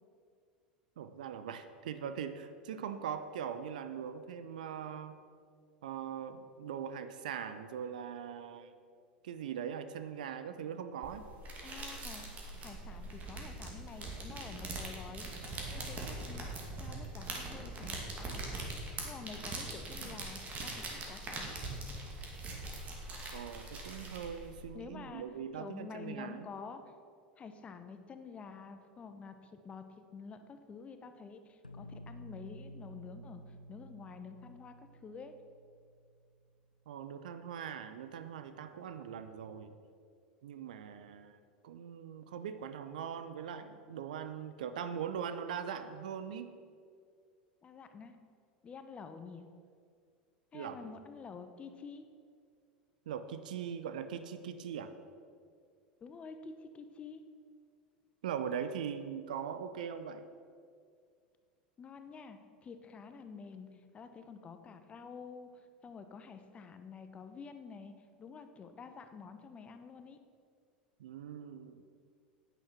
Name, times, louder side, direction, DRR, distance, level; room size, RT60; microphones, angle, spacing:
voice 1, 1.0-5.2 5.8-8.7 9.2-11.3 23.3-26.5 36.9-39.8 40.4-46.5 50.5-50.9 53.1-54.9 58.2-60.2 71.0-71.8, right 8 dB, 65° right, 11 dB, 0.7 m, -41 dB
sound 1, 11.0-24.6, right 2 dB, 30° right, 2.4 m, -42 dB
voice 2, 11.6-12.3 12.6-15.3 15.7-16.5 16.8-18.7 19.0-21.6 24.7-25.3 25.5-26.9 27.4-35.3 47.6-48.2 48.6-49.4 50.5-52.1 56.0-57.2 61.8-70.2, left 5 dB, 25° left, 8 dB, 0.9 m, -49 dB
sound 2, 31.6-36.5, equal, 85° left, 0.8 m, -52 dB
10.5 x 9.2 x 5.9 m, 2.2 s
figure-of-eight pair, 80°, 5 cm